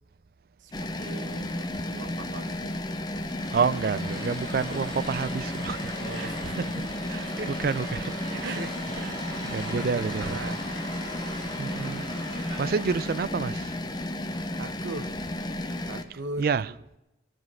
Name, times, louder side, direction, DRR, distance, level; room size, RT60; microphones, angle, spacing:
voice 1, 0.6-2.7 6.0-6.7 7.1-7.5 8.3-9.1 9.4-10.7 11.4-12.4 14.6-15.1 15.9-16.8, right 2 dB, 90° right, 1.0 m, -40 dB
sound 1, 0.7-16.0, left 1 dB, 25° left, 0.7 m, -33 dB
sound 2, 3.2-13.5, right 1 dB, 20° right, 5.7 m, -41 dB
voice 2, 3.5-6.7 7.1-7.3 7.6-8.1 8.4-8.6 9.0-9.1 9.5-10.4 11.6-13.8 16.4-16.7, right 5 dB, 55° right, 0.4 m, -29 dB
18.0 x 7.7 x 6.1 m
head